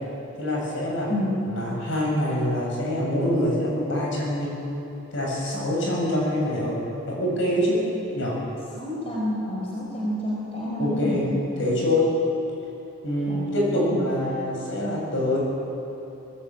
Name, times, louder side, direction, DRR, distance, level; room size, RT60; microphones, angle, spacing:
voice 1, 0.4-1.1 1.5-4.5 5.1-6.8 7.1-7.8 8.1-8.3 10.8-11.3 11.6-12.0 13.0-15.4, left 1 dB, 60° left, -3 dB, 7.9 m, -25 dB
voice 2, 1.1-1.4 8.7-11.4 13.3-13.4 13.9-14.0, left 1 dB, 25° left, -5 dB, 4.8 m, -28 dB
22.5 x 19.5 x 8.8 m, 2.9 s
head